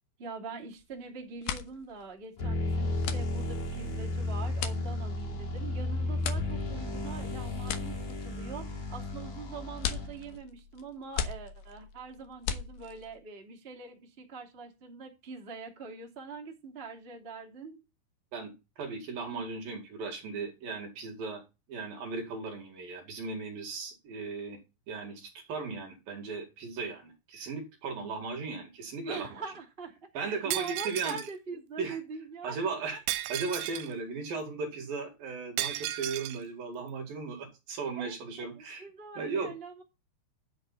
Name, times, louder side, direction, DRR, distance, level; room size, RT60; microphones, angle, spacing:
voice 1, 0.2-17.8 29.1-32.6 32.9-33.0 37.9-39.8, right 4 dB, 20° right, 1 dB, 1.6 m, -43 dB
sound 1, 0.7-1.0 1.3-13.2, left 8 dB, 70° left, 2.6 m, -39 dB
sound 2, 2.4-10.4, left 2 dB, 45° left, 4.3 m, -33 dB
voice 2, 18.8-21.4 21.7-24.6 24.9-29.3 30.1-31.2 31.8-32.0 32.4-33.0 33.3-38.8 39.2-39.5, right 4 dB, 55° right, 4 dB, 3.4 m, -36 dB
Shatter, 30.5-31.3 33.1-33.9 35.6-36.4, right 15 dB, 85° right, 3.2 m, -34 dB
11.0 x 7.8 x 4.1 m, 0.26 s
omnidirectional pair, 5.6 m